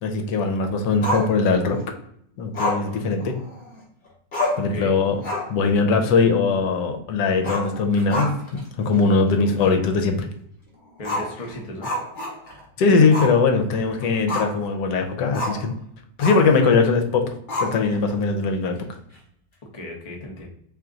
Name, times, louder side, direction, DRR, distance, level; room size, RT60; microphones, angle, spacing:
voice 1, 0.0-1.8 2.4-3.4 4.6-5.2 5.5-8.3 8.8-10.3 12.8-15.7 16.2-17.3 17.6-18.8, left 4 dB, 75° left, 4 dB, 1.3 m, -20 dB
Growling, 1.0-1.8 2.5-3.8 4.1-4.2 4.3-4.7 5.1-5.6 5.9-6.0 7.4-8.6 8.9-9.0 9.6-9.7 11.0-12.6 13.1-13.4 13.7-14.7 15.3-15.6 16.2-16.6 17.5-18.1, left 1 dB, 35° left, 1.0 m, -28 dB
voice 2, 4.5-4.9 9.4-9.5 11.0-11.9 19.7-20.5, left 1 dB, 60° left, 1 dB, 0.3 m, -35 dB
3.6 x 3.0 x 3.7 m, 0.71 s
omnidirectional pair, 1.9 m